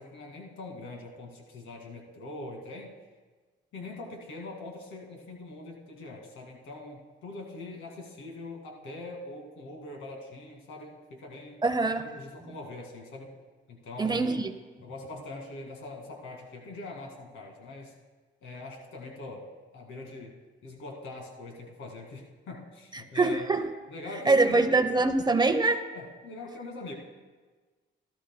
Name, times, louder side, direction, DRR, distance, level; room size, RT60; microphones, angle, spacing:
voice 1, 0.0-2.9 3.7-11.6 12.0-13.3 13.7-14.3 14.8-17.9 18.4-19.5 19.7-20.4 20.6-23.5 23.9-24.6 25.9-26.9, left 2 dB, 80° left, 1 dB, 2.2 m, -42 dB
voice 2, 11.6-12.1 14.0-14.5 23.1-23.6 24.3-25.8, right 3 dB, 20° right, 9 dB, 0.7 m, -24 dB
17.5 x 13.0 x 2.2 m, 1.4 s
cardioid pair, 90°, 20 cm